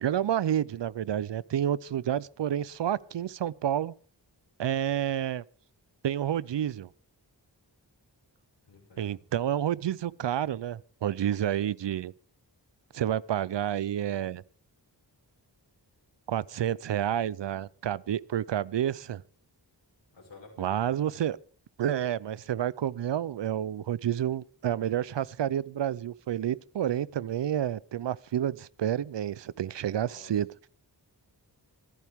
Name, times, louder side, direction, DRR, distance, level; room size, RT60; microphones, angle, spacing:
voice 1, 0.0-3.9 4.6-5.4 6.0-6.9 9.0-12.1 12.9-14.4 16.3-19.2 20.6-21.4 21.8-30.5, right 10 dB, 80° right, 0.6 m, -29 dB
voice 2, 8.6-9.2 20.1-21.0 30.0-30.4, left 3 dB, 80° left, 6.0 m, -52 dB
26.5 x 9.4 x 3.6 m
cardioid pair, 55°, 43 cm